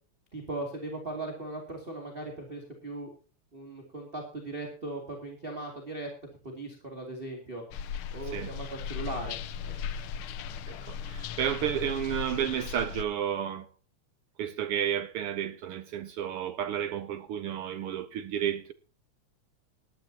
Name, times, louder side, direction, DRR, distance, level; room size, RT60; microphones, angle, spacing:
voice 1, 0.3-3.1 3.5-6.1 6.4-7.6 8.1-9.4 9.6-9.7, right 2 dB, 20° right, 2.5 m, -38 dB
sound 1, 7.7-13.0, left 8 dB, 85° left, 1.1 m, -37 dB
voice 2, 10.7-13.7 14.4-18.7, right 9 dB, 80° right, 1.2 m, -32 dB
18.5 x 12.5 x 2.8 m
omnidirectional pair, 3.3 m